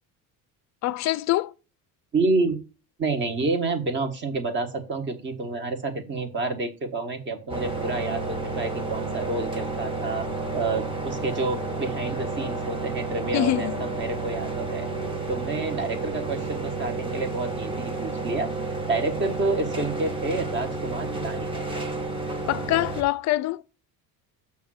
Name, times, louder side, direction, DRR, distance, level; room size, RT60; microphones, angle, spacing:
voice 1, 0.8-1.5 13.3-13.7 22.5-23.6, left 15 dB, 45° left, 0.4 m, -24 dB
voice 2, 2.1-2.6 3.0-10.3 10.5-14.9 15.3-18.5 18.9-21.5, right 3 dB, 30° right, 1.3 m, -29 dB
sound 1, 7.5-23.0, right 3 dB, 15° right, 1.1 m, -31 dB
7.3 x 3.5 x 6.3 m
cardioid pair, 155°, 38 cm